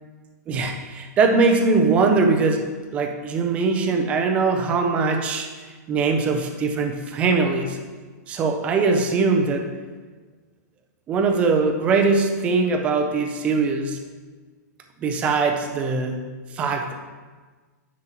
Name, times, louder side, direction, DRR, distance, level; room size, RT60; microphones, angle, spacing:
voice 1, 0.5-2.7 2.9-5.5 5.9-7.8 8.3-9.7 11.1-14.0 15.0-17.1, right 4 dB, 15° right, 5 dB, 0.5 m, -21 dB
9.8 x 7.4 x 2.9 m, 1.4 s
hypercardioid pair, 170°, 10 cm